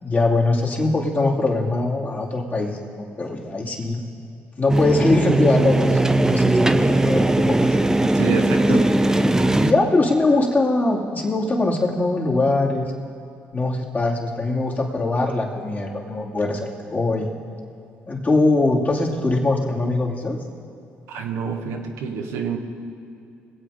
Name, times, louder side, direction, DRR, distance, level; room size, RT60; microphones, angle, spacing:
voice 1, 0.0-4.0 4.6-7.8 8.7-8.8 9.6-12.9 13.5-17.3 18.1-20.4, left 2 dB, 35° left, -3 dB, 2.6 m, -22 dB
sound 1, 4.7-9.7, right 2 dB, 10° right, 0.7 m, -19 dB
voice 2, 8.1-8.8 21.1-22.6, right 6 dB, 80° right, 2 dB, 1.3 m, -27 dB
22.5 x 8.0 x 5.0 m, 2.6 s
supercardioid pair, 65°, 5 cm